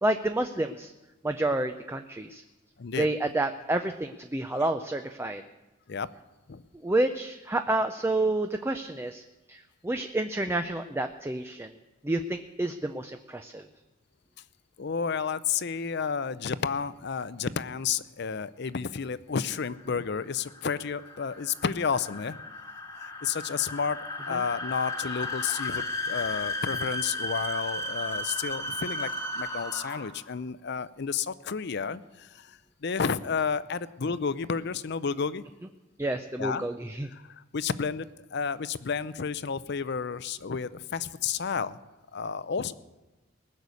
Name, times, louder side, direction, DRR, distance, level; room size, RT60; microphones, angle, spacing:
voice 1, 0.0-0.9 1.2-2.4 3.0-5.4 6.8-11.7 12.0-13.7 24.3-24.4 36.0-37.1, right 2 dB, 10° right, 7 dB, 0.5 m, -29 dB
voice 2, 14.8-22.4 23.0-24.0 24.2-35.4 36.4-36.7 37.1-41.8 42.1-42.7, left 6 dB, 55° left, 15 dB, 0.6 m, -31 dB
sound 1, 19.6-30.2, left 1 dB, 15° left, 1.3 m, -35 dB
20.0 x 6.6 x 8.4 m, 1.1 s
head